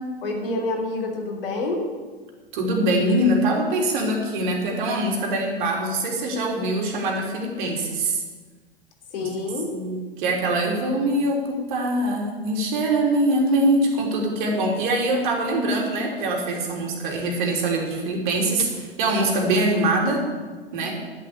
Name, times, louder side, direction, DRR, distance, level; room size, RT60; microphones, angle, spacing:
voice 1, 0.2-1.9 9.1-9.7, left 2 dB, 60° left, 2 dB, 3.1 m, -27 dB
voice 2, 2.5-8.2 9.2-9.3 9.7-20.2 20.7-20.9, right 1 dB, 50° right, 0 dB, 3.4 m, -23 dB
11.5 x 7.5 x 8.5 m, 1.4 s
figure-of-eight pair, 100°, 31 cm